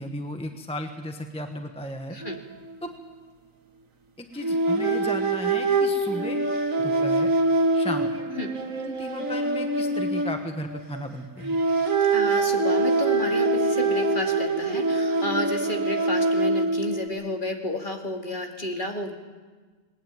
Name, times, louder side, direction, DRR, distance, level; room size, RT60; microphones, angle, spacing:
voice 1, 0.0-2.2 2.8-2.9 4.2-6.4 6.8-7.3 7.7-8.1 8.8-11.6, equal, 5° left, 5 dB, 1.1 m, -35 dB
sound 1, 2.2-2.4 2.7-2.9 4.4-11.0 11.4-17.1, right 2 dB, 65° right, 2.1 m, -24 dB
voice 2, 12.1-19.1, left 1 dB, 35° left, 2 dB, 2.4 m, -31 dB
20.0 x 19.5 x 9.3 m, 1.4 s
omnidirectional pair, 1.5 m